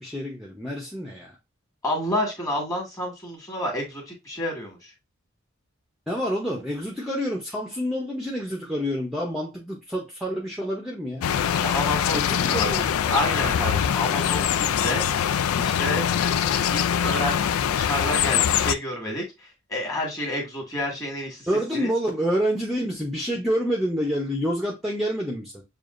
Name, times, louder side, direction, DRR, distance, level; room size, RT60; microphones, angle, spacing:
voice 1, 0.0-1.4 6.1-11.2 12.1-12.8 21.5-25.6, equal, ahead, 0.7 m, -28 dB
voice 2, 1.8-4.9 11.6-15.1 15.6-21.5 21.7-21.9, left 1 dB, 15° left, 1.8 m, -30 dB
sound 1, 11.2-18.7, left 9 dB, 85° left, 0.3 m, -23 dB
6.7 x 2.4 x 2.5 m
head